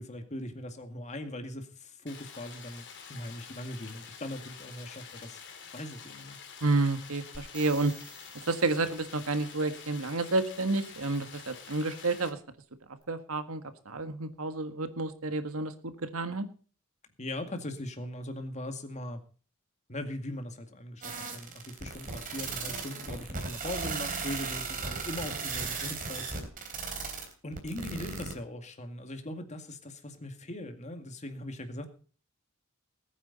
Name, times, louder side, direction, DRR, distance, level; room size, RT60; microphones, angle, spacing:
voice 1, 0.0-5.4 5.7-6.4 17.2-19.2 19.9-26.3 27.4-31.9, left 1 dB, 35° left, 6 dB, 2.2 m, -40 dB
Stream, 2.1-12.3, left 7 dB, 60° left, 2.9 m, -48 dB
voice 2, 6.6-7.9 8.5-12.4 13.1-16.4, right 3 dB, 85° right, 9 dB, 1.6 m, -30 dB
sound 1, 7.3-9.2 13.0-13.1, right 1 dB, 5° right, 3.4 m, -50 dB
sound 2, 21.0-28.3, right 4 dB, 40° right, 3.5 m, -36 dB
20.5 x 9.3 x 4.2 m, 0.41 s
head